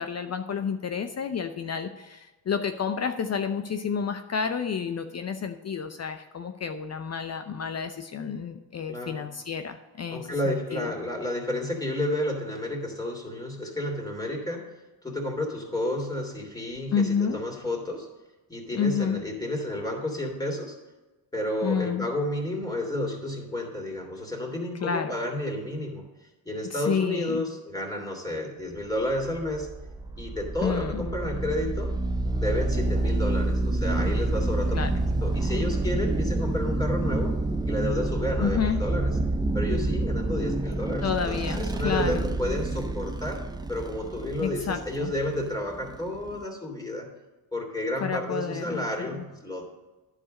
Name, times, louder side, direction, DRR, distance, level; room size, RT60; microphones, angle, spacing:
voice 1, 0.0-10.9 16.9-17.4 18.7-19.2 21.6-22.0 24.8-25.1 26.7-27.4 30.6-31.1 34.7-34.9 38.4-38.8 41.0-42.2 44.4-45.1 48.0-49.2, left 6 dB, 35° left, 8 dB, 0.7 m, -30 dB
voice 2, 8.9-9.2 10.1-14.7 15.0-18.1 18.5-20.8 21.3-26.0 26.4-29.7 30.2-31.9 32.3-34.8 35.2-37.3 37.6-39.1 39.5-43.4 43.7-47.1 47.5-49.6, left 1 dB, 10° left, 0 dB, 3.0 m, -31 dB
sound 1, 29.1-46.4, right 2 dB, 10° right, 0.5 m, -28 dB
10.5 x 5.0 x 6.4 m, 1.2 s
supercardioid pair, 65°, 45 cm